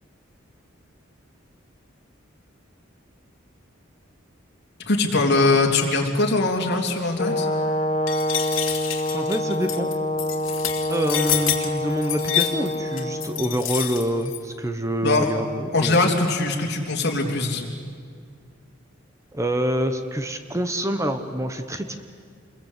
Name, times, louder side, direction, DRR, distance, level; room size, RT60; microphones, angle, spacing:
voice 1, 4.9-7.5 15.0-15.3 15.7-17.7, left 3 dB, 60° left, 1 dB, 3.4 m, -21 dB
Brass instrument, 7.2-13.3, left 1 dB, 35° left, 2.6 m, -26 dB
sound 1, 8.1-14.4, left 11 dB, 75° left, 2.6 m, -28 dB
voice 2, 9.1-9.9 10.9-16.1 19.3-22.0, equal, 15° right, 8 dB, 1.1 m, -26 dB
28.0 x 22.5 x 8.3 m, 2.1 s
head